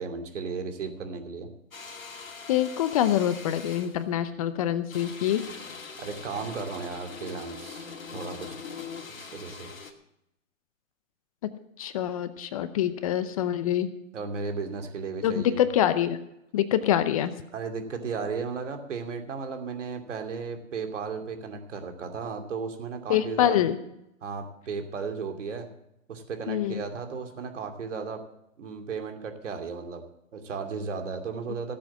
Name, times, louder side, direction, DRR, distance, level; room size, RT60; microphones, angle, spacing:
voice 1, 0.0-1.5 6.0-8.6 9.1-9.7 14.1-15.6 17.5-23.6 24.2-25.7 26.1-28.2 28.6-30.0 30.3-31.7, right 5 dB, 60° right, 4 dB, 2.7 m, -35 dB
sound 1, 1.7-4.0 4.9-9.9, left 5 dB, 80° left, 2.5 m, -42 dB
voice 2, 2.5-5.4 11.4-11.5 11.8-13.9 15.2-16.2 16.5-17.3 23.1-23.8 26.5-26.8, left 11 dB, 25° left, 13 dB, 0.6 m, -25 dB
16.0 x 7.6 x 7.4 m, 0.80 s
hypercardioid pair, 140°, 40 cm